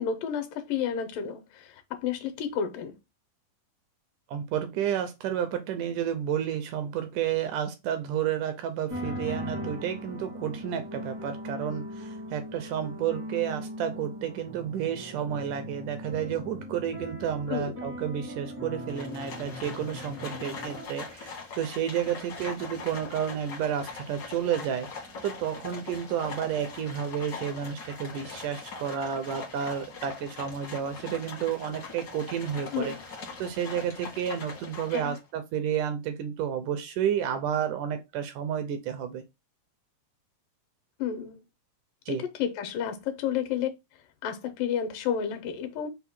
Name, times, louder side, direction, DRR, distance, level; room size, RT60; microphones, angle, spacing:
voice 1, 0.0-1.7 2.0-2.9 17.5-17.7 32.7-33.0 34.9-35.2 41.0-41.4 42.2-43.7 44.2-45.9, left 8 dB, 85° left, 2.3 m, -31 dB
voice 2, 4.3-24.9 25.2-32.9 33.4-39.2 42.1-42.2, right 9 dB, 80° right, 2.0 m, -31 dB
sound 1, 8.9-20.9, left 1 dB, 30° right, 0.5 m, -39 dB
Livestock farm animals working animals, 18.9-35.3, left 4 dB, 65° left, 0.9 m, -42 dB
5.5 x 2.1 x 4.2 m
omnidirectional pair, 3.9 m